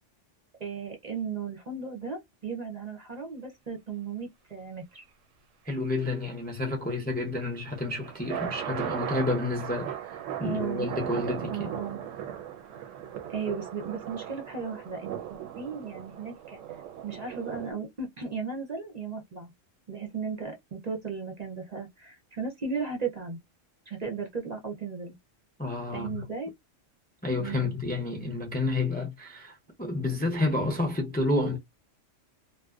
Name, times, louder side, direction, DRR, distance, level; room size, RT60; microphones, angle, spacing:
voice 1, 0.6-5.0 6.7-7.1 10.3-10.9 11.5-12.0 13.3-16.6 17.0-19.5 19.9-23.4 23.9-25.1 25.9-26.5 27.4-27.8, right 5 dB, 45° right, 0.6 m, -36 dB
voice 2, 5.6-9.9 10.4-11.7 25.6-26.2 27.2-31.6, left 2 dB, 15° left, 0.4 m, -30 dB
sound 1, 7.5-17.7, right 9 dB, 85° right, 1.0 m, -38 dB
2.6 x 2.1 x 2.3 m
omnidirectional pair, 1.3 m